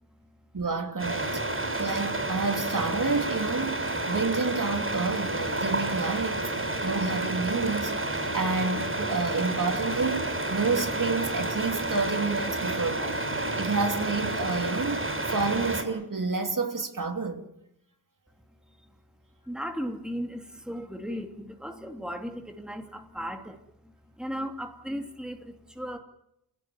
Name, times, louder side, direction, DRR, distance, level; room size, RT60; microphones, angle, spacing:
voice 1, 0.5-1.4 1.8-3.8 4.0-7.9 8.3-15.0 15.3-17.5, right 4 dB, 50° right, 3.1 m, -29 dB
sound 1, 1.0-15.8, right 2 dB, 30° right, 6.1 m, -30 dB
voice 2, 19.5-26.0, equal, ahead, 3.0 m, -36 dB
29.0 x 17.5 x 9.7 m
wide cardioid pair, 80°, 40 cm